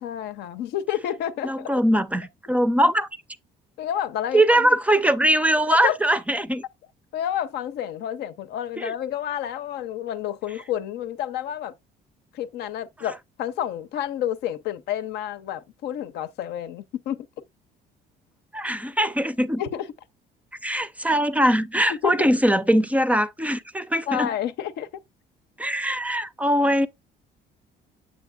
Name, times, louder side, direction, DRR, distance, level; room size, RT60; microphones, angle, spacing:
voice 1, 0.0-1.7 3.8-4.7 5.7-6.0 7.1-11.7 12.3-17.2 19.6-19.9 21.9-22.3 24.1-24.9, left 10 dB, 80° left, 0.7 m, -29 dB
voice 2, 1.4-3.1 4.3-6.6 8.8-8.9 18.5-19.6 20.6-24.3 25.6-26.9, right 1 dB, 10° right, 0.4 m, -21 dB
7.5 x 7.3 x 2.3 m
cardioid pair, 110°, 17 cm